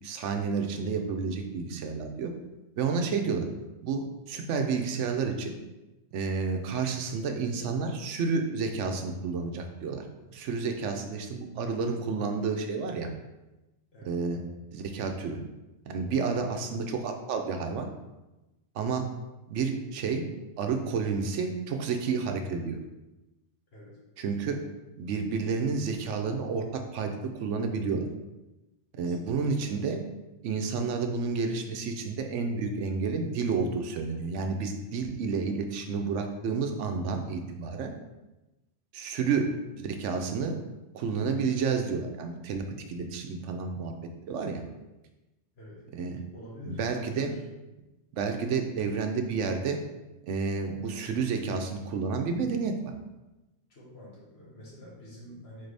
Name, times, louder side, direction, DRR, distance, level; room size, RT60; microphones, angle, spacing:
voice 1, 0.0-2.3 2.8-3.4 3.8-5.5 6.1-10.0 10.3-13.1 14.0-14.4 14.7-15.4 15.9-17.9 18.7-19.1 19.5-20.2 20.6-22.8 24.2-24.6 25.0-28.1 29.0-30.0 30.4-37.9 38.9-39.5 39.8-40.6 40.9-43.9 44.3-44.6 45.9-46.2 46.6-47.3 48.1-49.8 50.3-52.7, right 5 dB, 90° right, 5 dB, 0.9 m, -30 dB
voice 2, 29.0-29.6 45.5-45.8 46.3-47.4 53.7-55.7, left 1 dB, 60° left, -5 dB, 1.6 m, -47 dB
4.0 x 4.0 x 3.3 m, 1.0 s
omnidirectional pair, 1.2 m